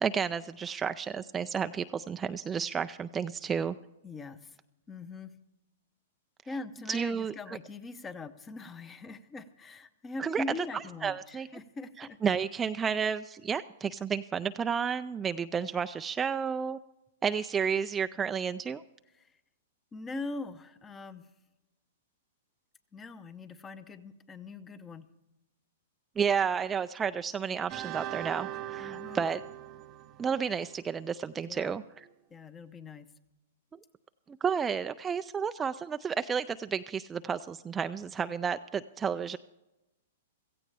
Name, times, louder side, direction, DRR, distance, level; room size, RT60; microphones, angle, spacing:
voice 1, 0.0-3.8 6.9-7.3 10.2-10.4 11.0-11.5 12.2-16.8 17.2-18.8 26.2-29.4 30.2-31.8 34.3-39.4, right 6 dB, 15° right, 10 dB, 0.3 m, -31 dB
voice 2, 4.0-4.6 4.9-5.3 6.5-12.2 19.1-19.4 19.9-21.3 22.9-25.1 28.8-29.2 31.4-31.8 32.3-33.1, left 3 dB, 20° left, 13 dB, 0.8 m, -42 dB
sound 1, 27.7-31.1, right 14 dB, 35° right, 0.8 m, -41 dB
16.5 x 15.0 x 3.4 m, 0.98 s
hypercardioid pair, 125°, 0 cm